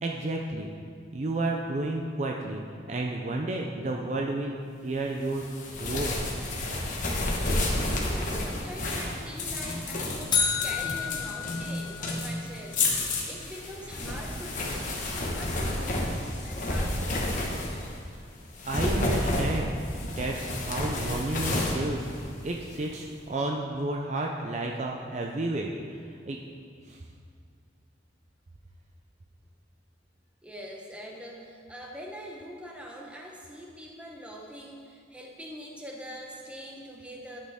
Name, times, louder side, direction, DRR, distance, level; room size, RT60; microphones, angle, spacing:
voice 1, 0.0-0.7 1.1-5.5 5.8-6.1 18.6-19.7 20.0-26.4 26.9-27.0, right 2 dB, 35° right, 0 dB, 0.5 m, -31 dB
sound 1, 5.3-18.0 18.5-22.8, left 2 dB, 40° left, 1.2 m, -30 dB
voice 2, 7.9-15.0 15.3-17.5 30.4-37.4, equal, 5° right, -1 dB, 0.9 m, -43 dB
sound 2, 10.3-12.4, left 6 dB, 25° left, 0.7 m, -30 dB
11.5 x 6.4 x 3.6 m, 2.2 s
head